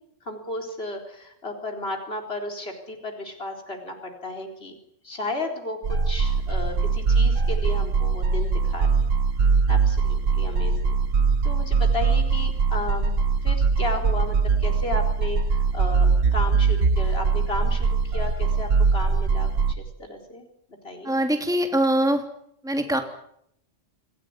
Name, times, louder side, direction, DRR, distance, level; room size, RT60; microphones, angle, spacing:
voice 1, 0.2-4.7 5.0-9.1 9.7-11.0 11.4-13.1 13.4-19.5 19.8-20.5 20.8-21.1, left 2 dB, 55° left, 3 dB, 4.4 m, -34 dB
sound 1, 5.8-19.7, right 5 dB, 80° right, 1.8 m, -22 dB
voice 2, 21.0-22.2 22.6-23.0, right 1 dB, 5° right, 4 dB, 2.8 m, -22 dB
28.5 x 18.0 x 9.6 m, 0.74 s
omnidirectional pair, 1.3 m